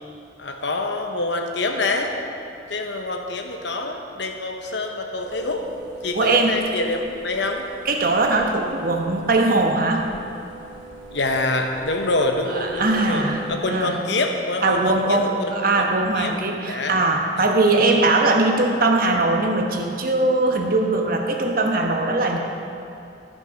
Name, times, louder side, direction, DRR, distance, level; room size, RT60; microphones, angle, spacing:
voice 1, 0.4-2.1 2.7-5.7 6.0-7.7 11.1-15.9 16.1-17.0 17.4-17.5, left 2 dB, 65° left, 4 dB, 1.0 m, -26 dB
sound 1, 5.2-13.6, right 2 dB, 80° right, 2.3 m, -40 dB
voice 2, 6.1-6.5 7.8-10.0 12.5-13.4 13.7-14.0 14.6-22.4, right 2 dB, 50° right, 2 dB, 1.0 m, -20 dB
15.0 x 6.2 x 5.1 m, 2.6 s
head